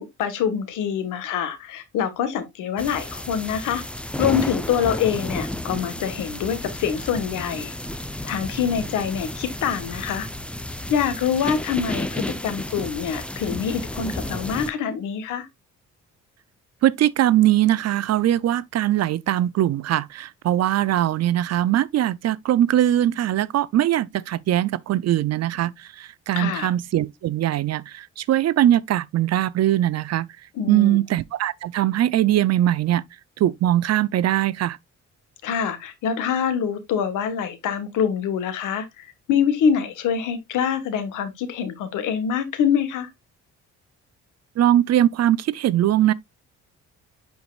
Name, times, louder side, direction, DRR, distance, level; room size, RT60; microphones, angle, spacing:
voice 1, 0.0-3.8 4.2-7.7 8.2-10.3 10.9-15.5 26.3-26.7 30.5-31.0 35.4-43.1, left 7 dB, 90° left, 1.5 m, -25 dB
sound 1, 2.8-14.7, left 1 dB, 5° left, 0.7 m, -32 dB
voice 2, 16.8-30.3 30.7-33.0 33.4-34.8 44.6-46.1, right 12 dB, 60° right, 0.6 m, -21 dB
9.4 x 4.7 x 2.4 m
cardioid pair, 90°, 30 cm